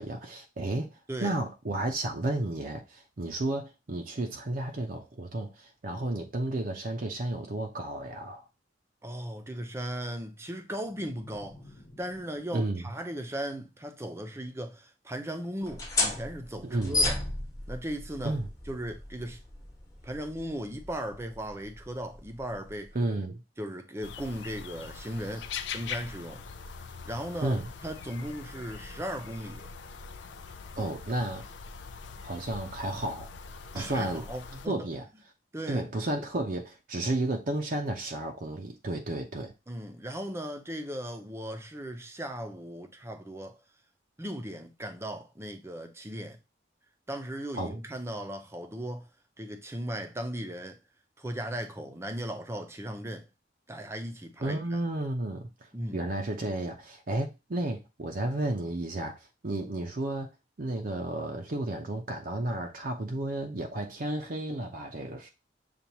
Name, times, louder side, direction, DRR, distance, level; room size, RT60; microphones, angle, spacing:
voice 1, 0.0-0.9 1.2-8.4 12.5-12.8 16.7-17.0 18.2-18.5 22.9-23.4 27.4-27.7 30.8-31.4 32.2-33.3 33.7-34.2 34.7-35.1 35.7-39.5 47.5-47.8 54.4-55.5 55.9-60.3 60.6-65.3, right 2 dB, 50° right, 0.7 m, -32 dB
voice 2, 9.0-11.6 12.0-17.2 17.7-18.4 18.7-19.4 20.0-22.9 23.6-26.4 27.0-29.7 33.7-34.9 35.5-35.9 39.7-43.6 44.2-46.4 47.1-49.1 49.4-50.8 51.2-53.3 53.7-54.8 55.7-56.0, equal, 15° right, 0.7 m, -37 dB
sound 1, 10.8-14.1, left 1 dB, 65° left, 1.0 m, -55 dB
sound 2, 15.6-22.9, left 2 dB, 20° left, 1.2 m, -34 dB
sound 3, 24.0-34.7, left 5 dB, 80° left, 0.5 m, -42 dB
6.9 x 2.5 x 2.9 m
head